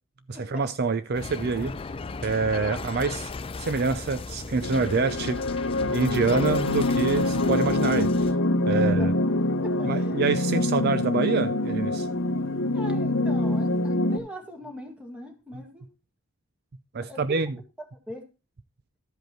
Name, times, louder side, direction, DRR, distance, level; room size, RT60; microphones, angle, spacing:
voice 1, 0.3-1.8 2.2-3.3 3.6-5.4 5.8-8.3 8.7-9.1 9.8-12.1 16.9-17.5, right 4 dB, 50° right, 0.5 m, -26 dB
sound 1, 1.1-8.3, left 4 dB, 25° left, 0.4 m, -37 dB
cum zone pad (consolidated), 4.6-14.2, left 2 dB, 70° left, 0.8 m, -25 dB
voice 2, 8.8-10.3 12.7-15.9 17.0-17.2 18.1-18.3, equal, 5° right, 1.8 m, -41 dB
13.0 x 5.3 x 4.5 m
head